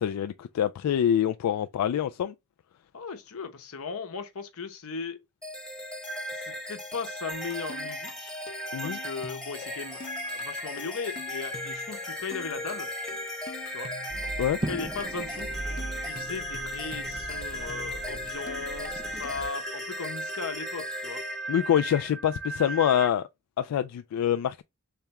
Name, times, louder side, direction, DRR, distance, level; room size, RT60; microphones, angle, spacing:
voice 1, 0.0-2.3 8.7-9.0 14.4-14.6 21.5-23.3 23.6-24.6, left 9 dB, 90° left, 0.3 m, -25 dB
voice 2, 2.9-5.2 6.3-8.3 8.8-12.9 13.7-13.9 14.6-15.6 16.0-21.2, left 5 dB, 65° left, 0.9 m, -37 dB
sound 1, 5.4-23.1, equal, 5° left, 1.0 m, -36 dB
sound 2, 7.3-19.6, left 3 dB, 40° left, 0.6 m, -46 dB
sound 3, 14.1-19.5, right 2 dB, 20° right, 0.4 m, -39 dB
3.5 x 3.3 x 2.9 m
head